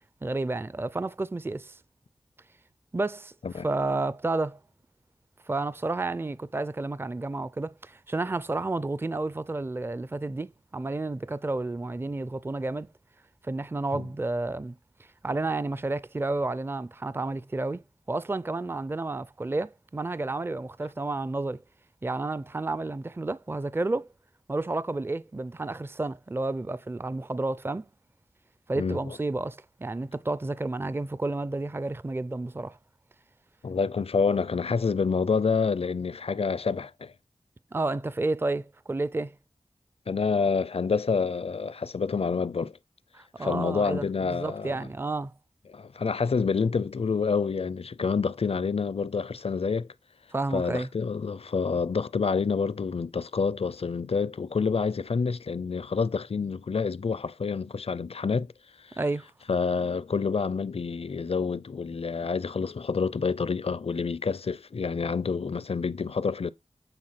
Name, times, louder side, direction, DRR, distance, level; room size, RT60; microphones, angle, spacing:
voice 1, 0.2-1.8 2.9-3.3 3.6-4.6 5.5-12.9 13.4-14.8 15.2-21.6 22.0-24.1 24.5-27.8 28.7-32.8 37.7-39.3 43.1-45.3 50.3-50.9 59.0-59.3, right 2 dB, 20° right, 0.4 m, -31 dB
voice 2, 28.8-29.2 33.6-37.1 40.1-42.8 43.4-44.9 45.7-49.9 50.5-58.5 58.9-59.0 59.5-66.5, left 5 dB, 60° left, 0.5 m, -28 dB
9.0 x 4.0 x 5.8 m
wide cardioid pair, 70°, 11 cm